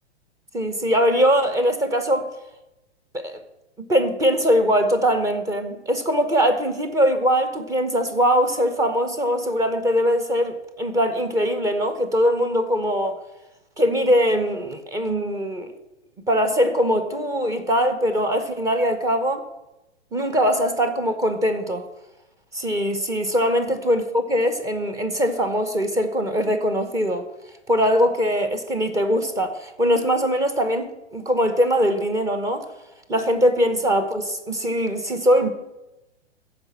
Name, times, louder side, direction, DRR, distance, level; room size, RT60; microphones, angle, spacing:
voice 1, 0.5-2.3 3.1-3.4 3.8-13.2 13.8-15.7 16.3-19.4 20.1-21.8 22.5-27.2 27.7-32.6 33.1-35.5, equal, 10° right, 1.0 m, -21 dB
14.5 x 5.3 x 7.2 m
figure-of-eight pair, 115°, 33 cm